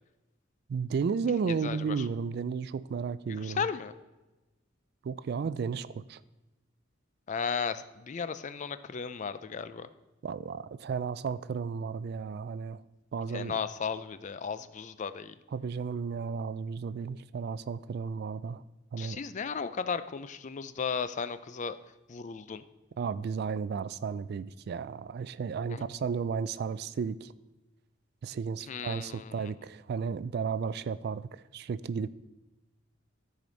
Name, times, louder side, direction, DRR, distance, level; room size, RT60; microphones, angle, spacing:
voice 1, 0.7-3.7 5.0-6.2 10.2-12.8 13.1-13.6 15.5-18.6 18.9-19.2 23.0-27.3 28.2-32.1, right 5 dB, 55° right, 16 dB, 0.3 m, -33 dB
voice 2, 1.6-2.0 3.3-3.9 7.3-9.9 13.3-15.3 19.0-21.8 22.1-22.6 25.7-25.8 28.7-29.5, left 6 dB, 40° left, 13 dB, 0.4 m, -35 dB
13.5 x 5.0 x 4.0 m, 1.0 s
head